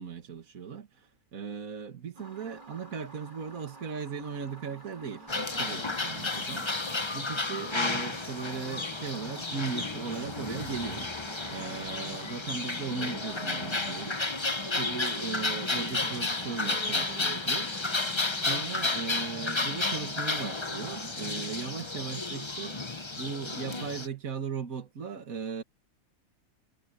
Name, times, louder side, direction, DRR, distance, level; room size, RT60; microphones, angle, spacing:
voice 1, 0.0-6.7 7.1-11.1 11.5-17.7 18.4-22.9 23.2-25.6, right 6 dB, 65° right, 2.1 m, -38 dB
sound 1, 2.1-20.1, right 2 dB, 30° right, 4.0 m, -51 dB
sound 2, 4.5-19.3, right 1 dB, 5° right, 2.9 m, -53 dB
sound 3, 5.3-24.1, left 3 dB, 20° left, 1.0 m, -32 dB
omnidirectional pair, 1.6 m